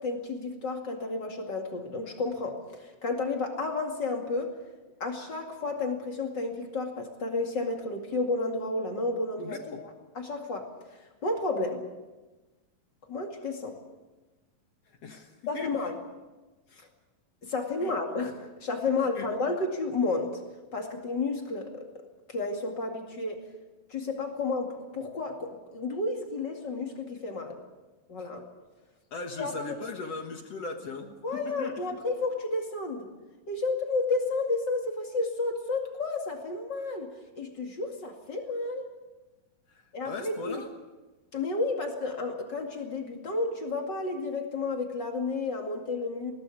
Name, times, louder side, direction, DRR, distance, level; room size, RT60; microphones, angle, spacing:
voice 1, 0.0-4.6 5.0-10.7 11.2-11.8 13.1-13.8 15.5-16.0 17.4-20.4 20.7-22.0 22.3-23.4 23.9-27.6 28.1-28.5 29.4-29.8 31.2-33.1 33.5-38.9 39.9-40.6 41.3-46.3, left 3 dB, 35° left, 3 dB, 2.5 m, -31 dB
voice 2, 9.4-9.8 15.0-15.8 16.7-16.8 17.8-17.9 19.2-19.3 28.2-28.3 29.1-32.0 39.7-39.8 40.0-40.7, left 4 dB, 55° left, 4 dB, 2.1 m, -38 dB
20.5 x 19.0 x 8.5 m, 1.2 s
omnidirectional pair, 4.1 m